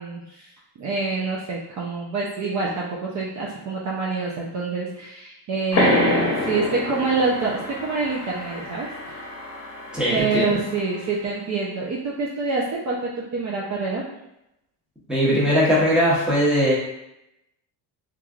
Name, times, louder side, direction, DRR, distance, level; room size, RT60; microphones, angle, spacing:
voice 1, 0.0-9.2 10.1-14.0, right 4 dB, 40° right, -4 dB, 0.5 m, -26 dB
sound 1, 5.7-11.0, left 2 dB, 35° left, 0.9 m, -27 dB
voice 2, 9.9-10.6 15.1-16.7, equal, ahead, -7 dB, 0.8 m, -20 dB
3.1 x 2.5 x 2.4 m, 0.86 s
cardioid pair, 130°, 45 cm